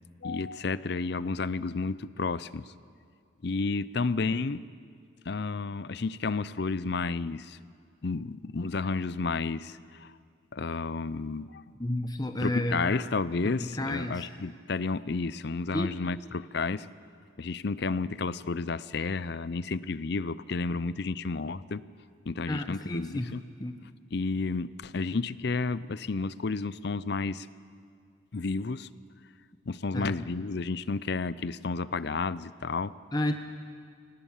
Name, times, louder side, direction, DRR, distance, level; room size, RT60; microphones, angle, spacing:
voice 1, 0.2-2.7 3.4-4.6 5.3-7.6 8.0-10.1 10.5-11.6 12.4-16.9 17.4-21.8 22.3-23.4 24.1-27.5 28.3-28.9 29.7-32.9, left 4 dB, 55° left, 17 dB, 0.5 m, -31 dB
voice 2, 11.8-12.9 13.4-14.3 15.7-15.9 22.5-23.3 23.6-23.8 29.9-30.2 33.1-33.3, left 1 dB, 20° left, 7 dB, 0.8 m, -31 dB
25.5 x 18.5 x 7.3 m, 2.1 s
head